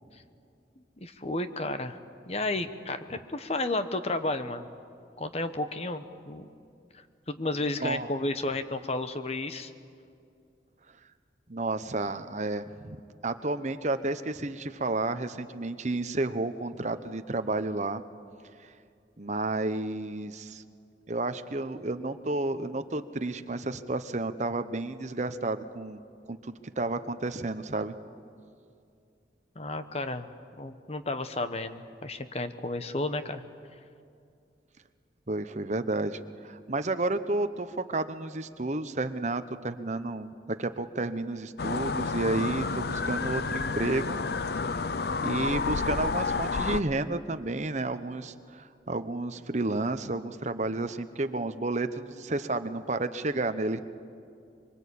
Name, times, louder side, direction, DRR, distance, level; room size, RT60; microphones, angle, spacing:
voice 1, 1.0-2.0 2.3-4.7 5.2-6.5 7.3-9.7 29.5-30.3 30.6-33.4, left 2 dB, 35° left, 10 dB, 1.1 m, -32 dB
voice 2, 11.5-13.0 13.2-18.0 18.6-18.7 19.2-20.6 21.1-26.0 26.3-27.9 35.3-44.2 45.2-53.8, right 2 dB, 40° right, 10 dB, 1.0 m, -31 dB
sound 1, 41.6-46.8, left 4 dB, 60° left, 0.7 m, -30 dB
24.5 x 24.0 x 8.5 m, 2.4 s
head